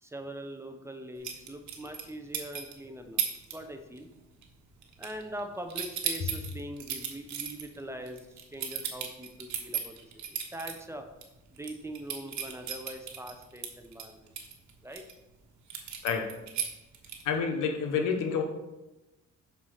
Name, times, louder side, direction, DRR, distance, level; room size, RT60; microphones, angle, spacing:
voice 1, 0.0-4.1 5.0-11.1 11.5-14.3 14.8-15.0, right 1 dB, 10° right, 5 dB, 0.9 m, -42 dB
sound 1, 1.2-2.1 2.3-2.7 3.2-3.5 3.8-4.2 4.4-5.4 5.7-10.7 11.2-11.3 11.6-15.1 15.7-17.4, right 8 dB, 65° right, 1.3 m, -35 dB
voice 2, 16.0-16.4 17.2-18.4, left 6 dB, 85° left, 5 dB, 1.2 m, -29 dB
5.8 x 4.6 x 6.5 m, 1.0 s
cardioid pair, 90°, 30 cm